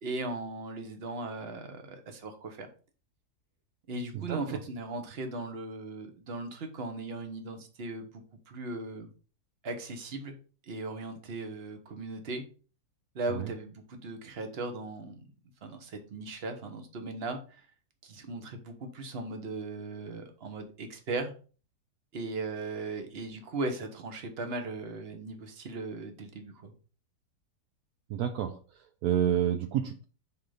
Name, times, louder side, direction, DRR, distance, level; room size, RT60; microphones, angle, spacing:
voice 1, 0.0-2.7 3.9-9.1 9.6-10.3 10.7-12.4 13.1-15.2 15.6-17.6 18.0-21.3 22.1-26.7, right 2 dB, 40° right, 6 dB, 1.2 m, -38 dB
voice 2, 4.1-4.6 13.3-13.5 28.1-28.6 29.0-30.0, right 10 dB, 75° right, 7 dB, 1.1 m, -29 dB
5.5 x 3.9 x 5.0 m, 0.37 s
omnidirectional pair, 1.7 m